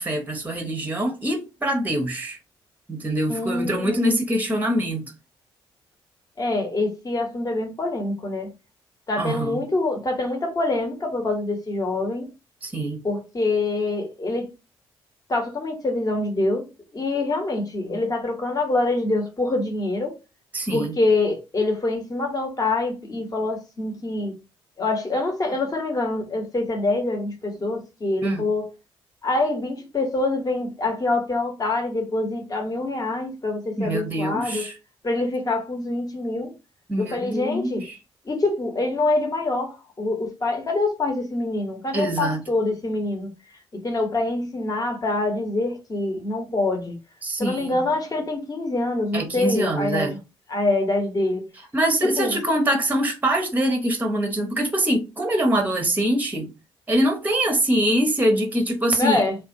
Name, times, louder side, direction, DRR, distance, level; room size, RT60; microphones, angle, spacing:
voice 1, 0.0-2.4 2.9-5.1 9.2-9.7 12.6-13.0 20.5-21.0 28.2-28.5 33.8-34.8 36.9-38.0 41.9-42.4 47.2-47.9 49.1-50.1 51.7-56.5 56.9-59.2, right 1 dB, 15° right, 0.7 m, -24 dB
voice 2, 3.3-4.2 6.4-8.5 9.1-12.3 13.0-14.5 15.3-16.7 16.9-20.1 20.7-24.4 24.8-28.7 29.2-34.7 35.0-36.5 37.0-37.9 38.2-43.3 43.8-47.0 47.4-50.2 50.5-51.5 52.0-52.4 59.0-59.4, left 2 dB, 30° left, 1.0 m, -25 dB
2.4 x 2.3 x 2.6 m
figure-of-eight pair, 40°, 13 cm